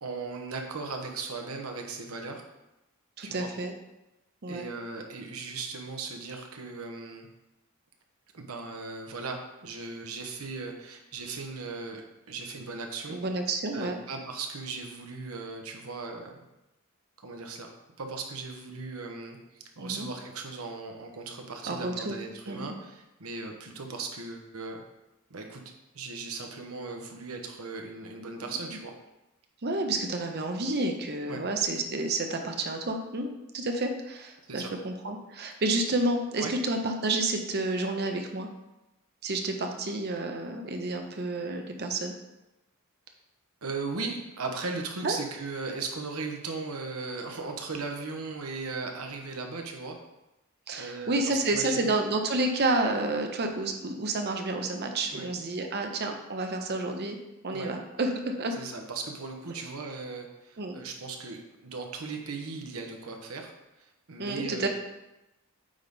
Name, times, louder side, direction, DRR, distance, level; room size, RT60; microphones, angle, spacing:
voice 1, 0.0-2.4 3.2-3.5 4.5-7.3 8.3-13.2 13.7-16.4 17.2-17.7 18.0-24.8 25.3-25.6 25.9-28.9 31.3-31.4 34.4-34.7 35.5-35.6 36.4-36.5 43.6-50.0 50.7-52.0 55.1-55.3 57.5-57.7 58.6-63.5 63.8-64.7, right 4 dB, 80° right, 3 dB, 1.0 m, -37 dB
voice 2, 3.2-3.7 4.4-4.7 13.1-14.0 19.8-20.1 21.7-22.2 22.5-22.7 29.6-38.5 39.2-42.1 45.0-45.2 50.7-57.2 57.4-58.5 60.6-60.8 64.2-64.7, right 2 dB, 50° right, 4 dB, 0.8 m, -30 dB
8.8 x 3.6 x 4.0 m, 0.94 s
head